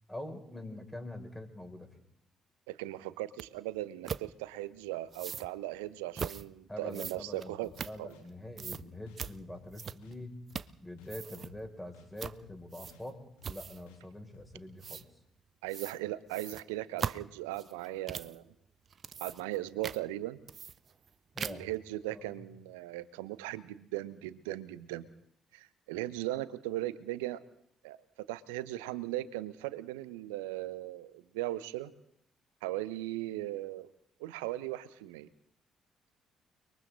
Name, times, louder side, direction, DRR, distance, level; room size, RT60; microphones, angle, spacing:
voice 1, 0.1-2.0 6.7-10.3 10.8-15.0 21.3-21.7 22.1-22.4, left 1 dB, 10° left, 4 dB, 6.0 m, -45 dB
voice 2, 2.7-7.7 8.0-8.1 15.6-18.4 19.2-20.4 21.4-25.1 25.5-27.4 27.8-28.0 28.3-31.9 32.6-33.9 34.2-35.3, right 16 dB, 75° right, 16 dB, 0.9 m, -38 dB
sound 1, 3.4-3.5 4.1-4.3 5.1-5.5 6.1-6.4 6.9-8.3 8.6-8.8 9.2-9.3 9.7-10.2 10.5-10.8 11.0-11.5 12.2-12.4 12.7-13.1 13.4-13.9 14.8-15.0 15.7-16.0 16.3-18.4 18.9-19.6 19.8-20.0 20.5-21.1 21.4-21.8, right 7 dB, 45° right, 0.7 m, -40 dB
sound 2, 7.6-7.8 8.1-8.2 8.6-8.7 9.1-9.2 9.5-9.7 10.0-10.2 10.5-10.6 11.0-11.1 11.5-11.6 11.9-12.1 12.4-12.6 12.9-13.0 13.4-13.5 13.9-14.0 14.3-14.5 14.8-15.0, left 5 dB, 75° left, 3.1 m, -60 dB
30.0 x 22.5 x 3.9 m, 0.71 s
figure-of-eight pair, 45°, 0 cm